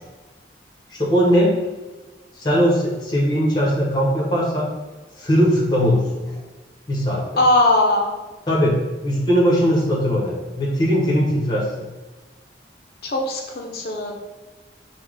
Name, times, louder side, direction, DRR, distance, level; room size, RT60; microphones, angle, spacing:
voice 1, 0.9-1.5 2.4-4.7 5.2-6.4 6.9-7.2 8.5-11.9, equal, 25° left, -4 dB, 1.1 m, -19 dB
voice 2, 7.4-8.1 13.0-14.1, left 2 dB, 55° left, 1 dB, 0.7 m, -19 dB
5.7 x 2.3 x 3.5 m, 1.2 s
head